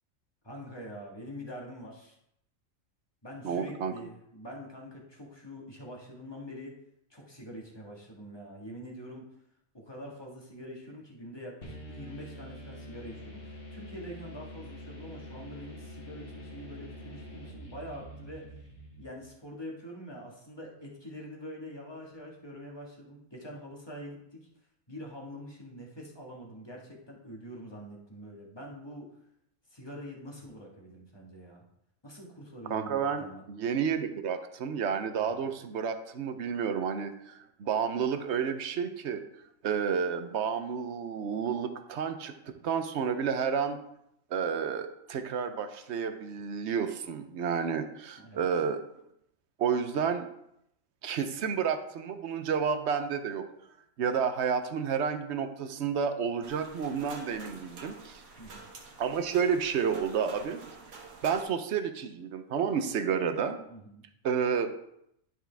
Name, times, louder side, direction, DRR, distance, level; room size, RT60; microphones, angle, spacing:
voice 1, 0.4-2.2 3.2-6.7 7.1-9.3 9.7-18.5 19.0-24.5 24.9-29.1 29.7-31.6 32.0-33.4 35.2-35.4 48.2-48.5 58.4-58.6 63.7-64.0, equal, 20° left, -2 dB, 1.6 m, -45 dB
voice 2, 3.4-3.9 32.7-39.2 39.6-42.3 42.6-43.8 44.3-48.8 49.6-50.3 51.0-53.4 54.0-58.2 59.0-60.6 61.2-63.6 64.2-64.7, right 7 dB, 60° right, 8 dB, 0.9 m, -30 dB
sound 1, 11.6-19.3, equal, 40° left, 1.8 m, -46 dB
sound 2, 56.4-61.5, right 3 dB, 85° right, 1.6 m, -48 dB
11.0 x 4.7 x 3.4 m, 0.76 s
omnidirectional pair, 1.4 m